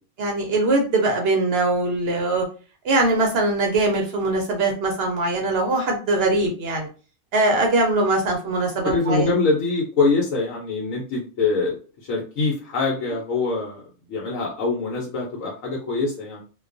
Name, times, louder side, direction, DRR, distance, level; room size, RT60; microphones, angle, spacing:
voice 1, 0.2-2.4 2.8-6.9 7.3-9.3, right 2 dB, 65° right, 1 dB, 0.7 m, -21 dB
voice 2, 8.8-13.8 14.1-16.4, left 4 dB, 85° left, -3 dB, 1.0 m, -24 dB
2.3 x 2.2 x 2.4 m, 0.36 s
omnidirectional pair, 1.4 m